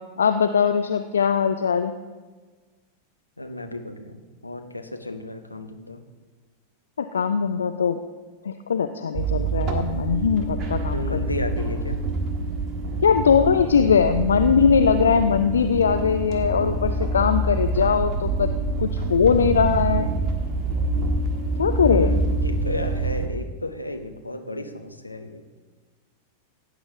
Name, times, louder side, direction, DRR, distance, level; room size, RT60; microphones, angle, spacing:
voice 1, 0.2-1.9 7.0-8.0 8.4-10.9 13.0-18.5 18.8-20.1 21.6-22.1, left 6 dB, 70° left, 9 dB, 0.4 m, -20 dB
voice 2, 3.4-6.0 10.9-12.0 21.8-25.4, left 1 dB, 85° left, 5 dB, 0.9 m, -33 dB
sound 1, 9.2-23.3, right 3 dB, 30° right, 1.5 m, -26 dB
16.0 x 8.8 x 3.6 m, 1.3 s
figure-of-eight pair, 90°, 0 cm